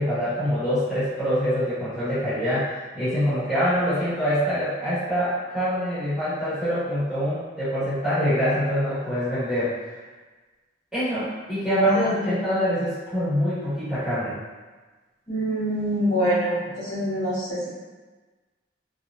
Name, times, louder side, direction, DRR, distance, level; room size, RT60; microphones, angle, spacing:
voice 1, 0.0-9.8 10.9-14.4, equal, 5° right, -15 dB, 1.3 m, -25 dB
voice 2, 11.7-12.3 15.3-17.7, equal, 35° left, -14 dB, 1.4 m, -25 dB
3.1 x 2.5 x 2.4 m, 1.3 s
head